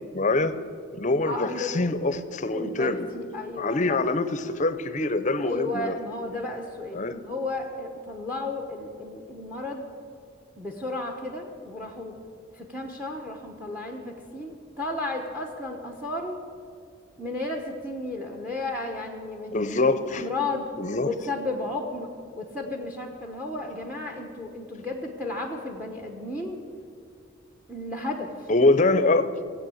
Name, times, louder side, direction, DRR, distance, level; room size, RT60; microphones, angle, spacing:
voice 1, 0.1-0.6 0.9-3.1 3.6-5.9 6.9-7.2 19.5-20.3 20.8-21.1 28.5-29.6, left 2 dB, 35° left, 12 dB, 0.6 m, -24 dB
voice 2, 1.3-1.8 2.5-4.0 5.4-9.9 10.6-12.1 12.6-16.4 17.2-19.7 20.2-20.7 21.0-22.1 22.3-26.6 27.7-28.3, left 2 dB, 10° right, 3 dB, 1.0 m, -33 dB
17.5 x 8.3 x 7.8 m, 2.3 s
head